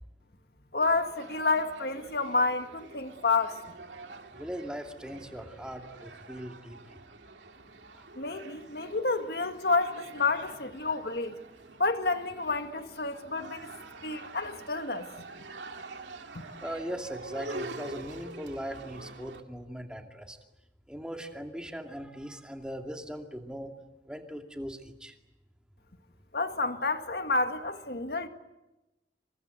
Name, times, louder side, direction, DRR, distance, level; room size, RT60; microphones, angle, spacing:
voice 1, 0.7-3.6 8.2-11.4 11.8-13.7 14.0-15.1 16.3-16.4 26.3-28.3, left 3 dB, 60° left, 2.0 m, -29 dB
sound 1, 0.8-19.4, right 2 dB, 90° right, 2.7 m, -46 dB
voice 2, 4.4-7.0 7.9-8.0 16.6-20.4 20.9-23.7 24.1-25.2, equal, 5° right, 2.5 m, -39 dB
28.0 x 25.5 x 8.0 m
head